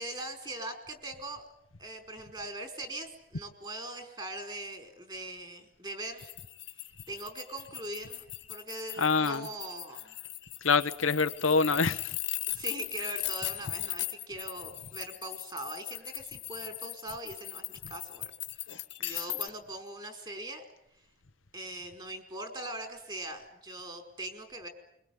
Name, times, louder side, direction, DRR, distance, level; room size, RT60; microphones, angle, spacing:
voice 1, 0.0-1.5 1.8-6.3 6.8-10.2 12.5-18.7 19.0-20.6 21.5-24.7, right 1 dB, 25° right, 4.8 m, -41 dB
sound 1, 6.2-19.5, left 16 dB, 65° left, 1.9 m, -39 dB
voice 2, 9.0-9.5 10.6-12.2 19.0-19.2, left 4 dB, 90° left, 1.2 m, -26 dB
25.0 x 23.5 x 9.5 m
head